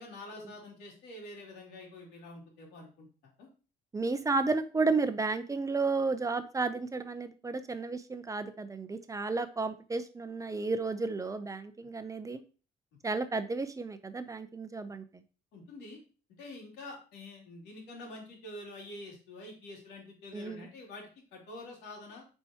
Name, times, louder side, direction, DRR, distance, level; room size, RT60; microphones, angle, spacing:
voice 1, 0.0-3.5 15.5-16.0 16.4-22.3, left 2 dB, 85° left, 0 dB, 2.8 m, -47 dB
voice 2, 3.9-12.4 13.0-15.2 20.3-20.7, right 3 dB, 20° right, 10 dB, 0.6 m, -32 dB
8.8 x 4.5 x 2.9 m, 0.36 s
cardioid pair, 110°, 17 cm